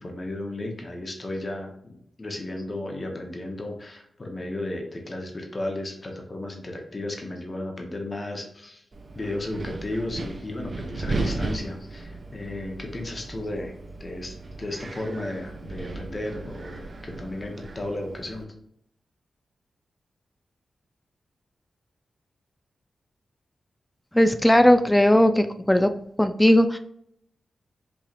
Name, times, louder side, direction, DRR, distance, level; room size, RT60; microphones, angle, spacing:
voice 1, 0.0-8.8 9.1-13.7 14.0-18.5, left 1 dB, 40° left, 2 dB, 1.0 m, -34 dB
Wind, 8.9-18.4, right 3 dB, 50° right, 0.6 m, -36 dB
voice 2, 24.1-25.9 26.2-26.8, left 1 dB, 15° left, 9 dB, 0.3 m, -18 dB
4.7 x 2.8 x 2.5 m, 0.70 s
cardioid pair, 50°, 0 cm